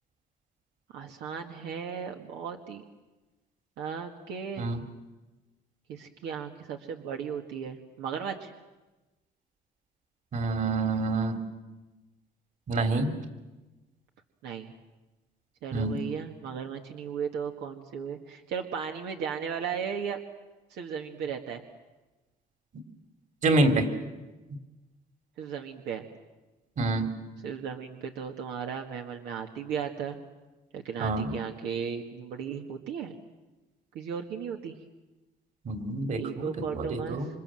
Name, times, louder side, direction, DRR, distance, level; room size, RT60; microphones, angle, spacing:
voice 1, 0.9-2.8 3.8-4.7 5.9-8.5 14.4-14.7 15.6-20.2 20.7-21.6 25.4-26.1 27.4-30.2 30.7-33.2 33.9-34.7 36.2-37.2, right 7 dB, 85° right, 3 dB, 1.9 m, -36 dB
voice 2, 10.3-11.4 12.7-13.1 15.7-16.0 23.4-23.9 26.8-27.1 31.0-31.3 35.7-37.3, right 2 dB, 50° right, 7 dB, 3.6 m, -27 dB
28.0 x 26.0 x 7.7 m, 1.1 s
cardioid pair, 110°, 17 cm